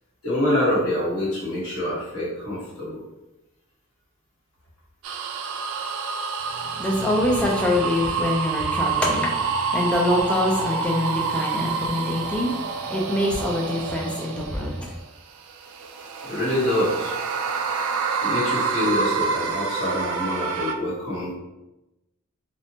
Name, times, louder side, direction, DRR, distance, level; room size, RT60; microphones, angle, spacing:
voice 1, 0.2-3.0 16.2-17.2 18.2-21.3, left 1 dB, 90° left, -7 dB, 1.3 m, -25 dB
sound 1, 5.0-14.9 15.5-20.7, right 5 dB, 80° right, 0.3 m, -28 dB
voice 2, 6.7-14.9, left 1 dB, 5° left, -1 dB, 0.3 m, -25 dB
2.6 x 2.1 x 2.8 m, 0.98 s
head